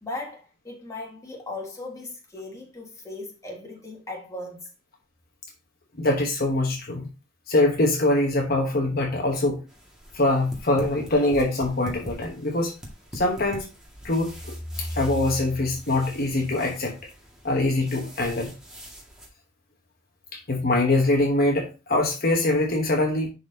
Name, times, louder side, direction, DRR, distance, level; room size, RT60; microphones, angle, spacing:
voice 1, 0.0-4.7, left 2 dB, 15° left, 1.7 m, -37 dB
voice 2, 6.0-7.1 7.5-9.6 10.1-12.7 13.1-13.7 14.0-16.9 17.4-18.5 20.3-23.3, left 2 dB, 50° left, 1.0 m, -23 dB
sound 1, 9.7-19.3, equal, 5° right, 1.9 m, -44 dB
10.5 x 4.1 x 2.8 m
head